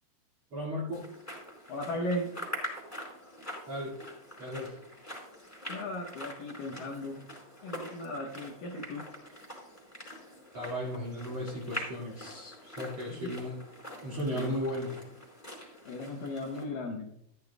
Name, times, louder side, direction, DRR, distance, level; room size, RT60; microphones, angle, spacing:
voice 1, 0.5-1.0 3.7-4.0 4.4-4.8 10.5-13.6 14.0-14.9, equal, 45° right, -7 dB, 2.7 m, -35 dB
sound 1, 0.9-16.6, left 1 dB, 5° left, 4.2 m, -44 dB
voice 2, 1.7-2.3 5.7-7.3 7.6-9.1 13.2-13.4 14.3-14.6 15.9-17.1, left 1 dB, 75° left, 1 dB, 2.0 m, -36 dB
14.0 x 12.5 x 2.3 m, 0.74 s
omnidirectional pair, 5.1 m